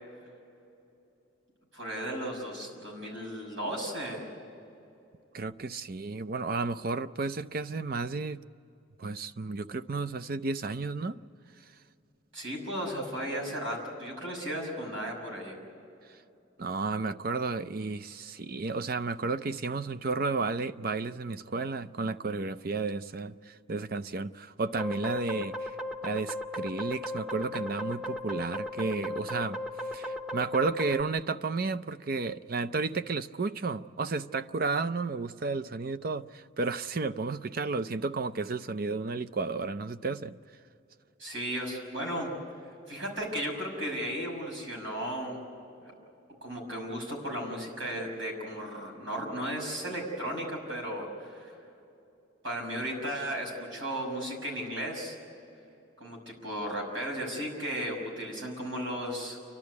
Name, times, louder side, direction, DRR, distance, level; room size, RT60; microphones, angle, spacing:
voice 1, 1.7-4.2 12.3-15.6 41.2-42.3 42.9-45.4 45.8-45.9 46.4-51.5 52.4-55.2 56.0-59.4, equal, 75° right, 0 dB, 6.4 m, -35 dB
voice 2, 5.3-8.4 9.0-11.2 16.6-25.8 26.0-29.6 29.9-40.4, right 3 dB, 50° right, 12 dB, 0.6 m, -32 dB
sound 1, 24.8-31.0, left 1 dB, 5° right, 0.8 m, -36 dB
29.5 x 12.0 x 9.7 m, 2.7 s
head